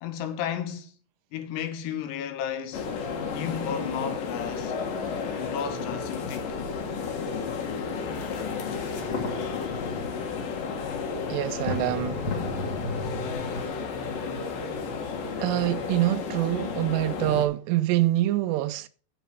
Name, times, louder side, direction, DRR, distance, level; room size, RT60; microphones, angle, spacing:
voice 1, 0.0-0.9 1.3-2.9 3.3-4.8 5.4-6.6, left 8 dB, 75° left, 3.2 m, -33 dB
sound 1, 2.7-17.5, left 5 dB, 60° left, 3.0 m, -32 dB
sound 2, 8.7-13.6, left 3 dB, 35° left, 2.4 m, -35 dB
voice 2, 11.3-12.3 15.4-18.9, right 15 dB, 80° right, 2.6 m, -25 dB
9.2 x 7.0 x 6.2 m
omnidirectional pair, 5.0 m